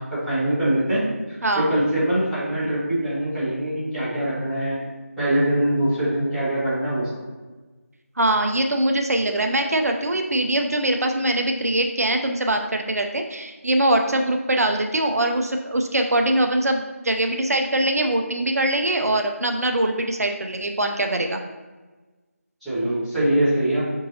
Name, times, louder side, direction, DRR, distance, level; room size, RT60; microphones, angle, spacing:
voice 1, 0.0-4.8 5.2-7.1 22.6-23.8, right 1 dB, ahead, -21 dB, 1.5 m, -23 dB
voice 2, 1.4-1.7 8.2-21.4, right 1 dB, 75° right, 4 dB, 0.5 m, -22 dB
4.8 x 3.7 x 2.7 m, 1.3 s
figure-of-eight pair, 170°, 8 cm